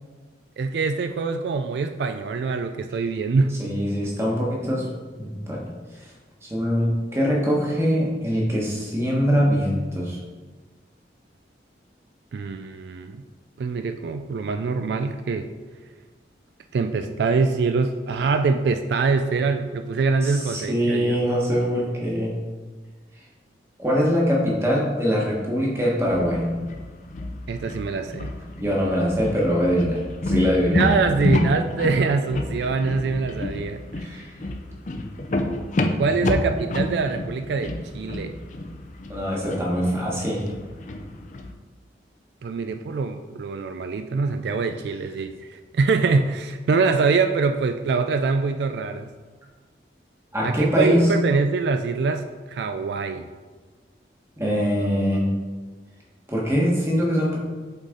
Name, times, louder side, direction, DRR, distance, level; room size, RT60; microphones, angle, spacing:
voice 1, 0.6-3.6 12.3-13.2 13.6-15.5 16.7-21.2 27.5-28.3 30.7-34.2 36.0-38.3 42.4-49.1 50.4-53.3, right 4 dB, 70° right, 7 dB, 0.3 m, -24 dB
voice 2, 3.6-4.8 5.2-5.7 5.9-6.1 6.4-10.2 20.2-22.3 23.8-26.4 28.6-30.8 34.0-34.3 39.1-40.4 50.3-51.0 54.4-55.3 56.3-57.4, equal, 15° right, -4 dB, 1.3 m, -23 dB
sound 1, 26.0-41.5, left 1 dB, 45° left, 0.5 m, -29 dB
7.9 x 4.1 x 3.8 m, 1.4 s
head